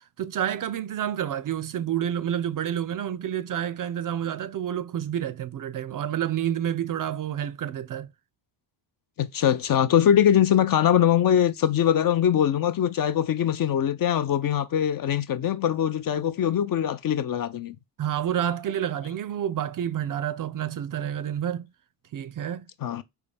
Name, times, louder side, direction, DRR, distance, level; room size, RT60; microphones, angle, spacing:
voice 1, 0.0-8.1 18.0-21.7 22.1-22.7, right 10 dB, 45° right, 0.4 m, -29 dB
voice 2, 9.2-17.8 22.8-23.0, left 10 dB, 45° left, 0.4 m, -22 dB
3.9 x 2.2 x 3.3 m
hypercardioid pair, 40°, 50 cm